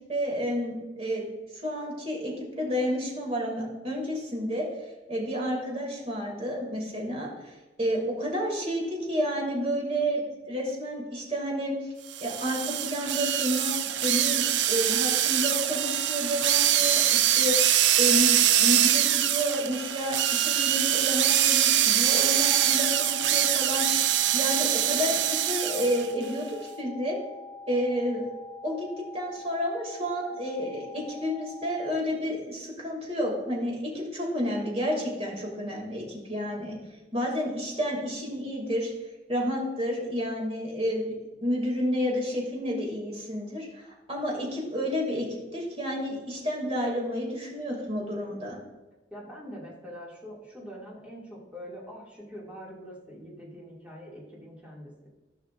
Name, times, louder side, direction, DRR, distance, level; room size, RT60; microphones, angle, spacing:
voice 1, 0.1-4.7 5.1-11.9 12.2-17.5 18.0-26.4 26.8-27.2 27.7-28.3 28.6-36.7 37.1-38.9 39.3-48.6, equal, 35° right, -2 dB, 2.6 m, -30 dB
sound 1, 12.1-26.1, right 11 dB, 85° right, 0.4 m, -24 dB
sound 2, 22.0-32.0, left 3 dB, 40° left, 0.6 m, -45 dB
voice 2, 49.1-55.1, equal, 10° right, -5 dB, 2.3 m, -44 dB
14.5 x 5.6 x 2.6 m, 1.1 s
head